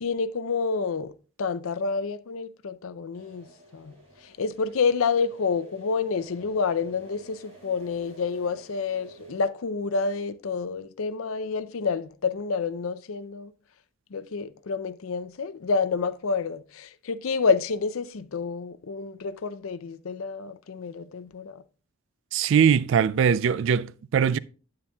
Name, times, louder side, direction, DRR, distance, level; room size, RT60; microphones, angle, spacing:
voice 1, 0.0-1.1 1.4-3.4 3.7-3.9 4.2-13.5 14.1-21.6, left 5 dB, 80° left, 0.5 m, -28 dB
sound 1, 3.1-9.5, right 1 dB, 30° right, 4.6 m, -50 dB
voice 2, 22.3-24.4, right 7 dB, 60° right, 0.3 m, -21 dB
9.5 x 8.7 x 2.3 m
head